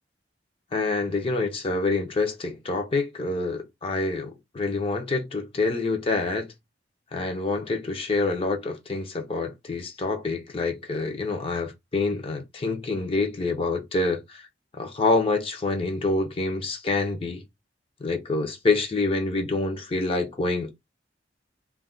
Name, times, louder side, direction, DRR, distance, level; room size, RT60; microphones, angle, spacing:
voice 1, 0.7-6.5 7.1-14.4 14.8-17.4 18.0-20.7, left 3 dB, 30° left, 0.4 m, -27 dB
2.3 x 2.1 x 3.6 m
head